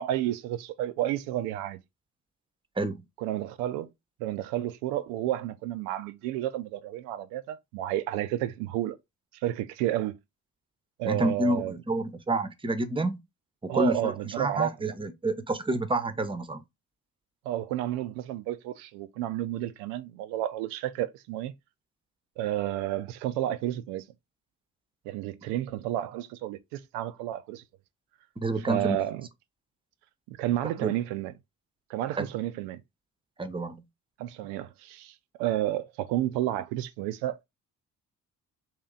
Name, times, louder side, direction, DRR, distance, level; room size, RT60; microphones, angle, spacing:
voice 1, 0.0-1.8 3.2-3.9 4.2-9.0 9.4-10.2 11.0-11.7 13.7-14.9 17.5-21.5 22.4-24.1 25.0-27.6 28.7-29.3 30.3-31.3 31.9-32.8 34.2-37.4, right 13 dB, 80° right, 0.5 m, -31 dB
voice 2, 11.1-13.2 13.6-16.6 28.4-29.0 30.8-30.9 32.2-32.3 33.4-33.8, right 2 dB, 15° right, 0.7 m, -29 dB
3.0 x 2.9 x 3.7 m
hypercardioid pair, 45°, 40 cm